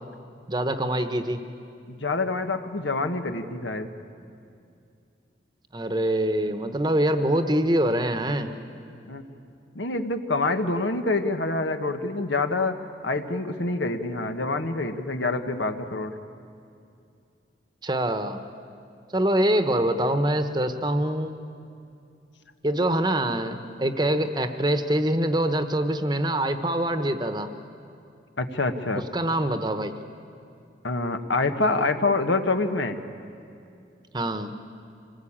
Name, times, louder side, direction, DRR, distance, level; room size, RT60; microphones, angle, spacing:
voice 1, 0.5-1.4 5.7-8.5 17.8-18.4 19.1-21.3 22.6-27.5 28.9-29.9 34.1-34.5, right 1 dB, 25° right, 9 dB, 1.0 m, -24 dB
voice 2, 1.9-3.9 9.0-9.2 9.7-12.8 13.0-16.1 28.4-29.0 30.8-33.0, left 3 dB, 85° left, 7 dB, 1.4 m, -26 dB
26.0 x 19.5 x 8.8 m, 2.5 s
head